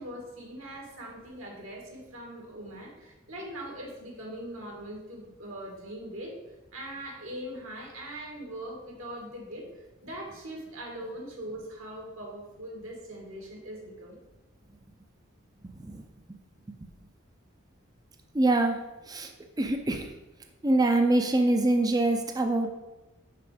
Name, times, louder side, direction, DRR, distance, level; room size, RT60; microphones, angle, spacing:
voice 1, 0.0-6.4 6.7-9.7 10.0-14.2, right 1 dB, 75° right, -1 dB, 2.1 m, -41 dB
voice 2, 18.3-18.8 19.1-19.3 19.6-20.1 20.6-22.7, right 2 dB, 20° right, 4 dB, 0.5 m, -24 dB
6.1 x 5.8 x 4.9 m, 1.1 s
head